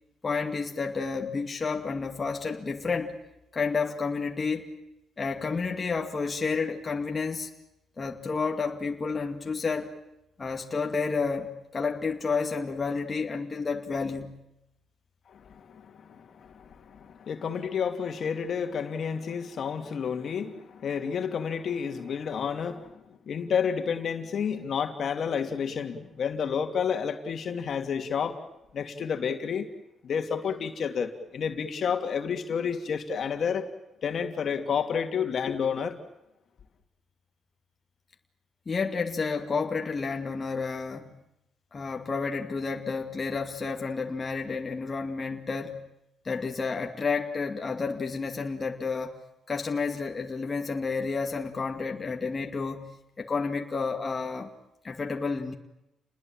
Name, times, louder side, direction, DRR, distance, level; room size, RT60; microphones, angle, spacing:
voice 1, 0.2-3.2 3.5-4.7 5.2-7.5 8.0-9.9 10.4-14.4 38.7-41.2 41.7-45.9 46.2-49.2 49.5-54.5 54.8-55.5, left 4 dB, 30° left, 2.3 m, -30 dB
voice 2, 15.3-28.4 28.7-29.7 30.0-33.7 34.0-36.0, left 7 dB, 55° left, 2.8 m, -30 dB
29.5 x 20.5 x 9.1 m
cardioid pair, 90°, 0 cm